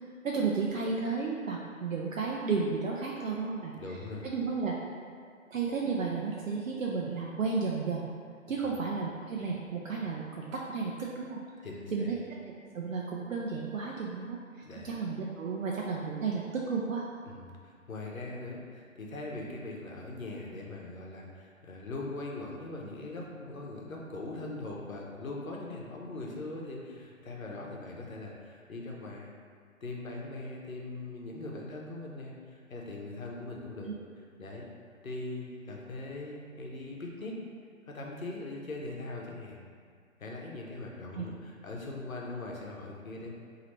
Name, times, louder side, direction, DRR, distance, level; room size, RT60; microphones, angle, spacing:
voice 1, 0.2-3.7 4.2-4.7 5.5-8.1 8.5-11.4 11.9-12.2 12.7-14.4 14.8-17.1 33.8-33.9 41.1-41.2, right 4 dB, 70° right, -3 dB, 0.6 m, -32 dB
voice 2, 3.7-4.3 8.6-8.7 11.6-12.1 14.6-14.9 17.3-29.3 29.8-33.9 34.4-34.7 35.0-37.4 37.9-39.6 40.2-43.3, left 2 dB, 80° left, -2 dB, 0.9 m, -41 dB
4.0 x 2.8 x 3.1 m, 2.1 s
figure-of-eight pair, 150°, 41 cm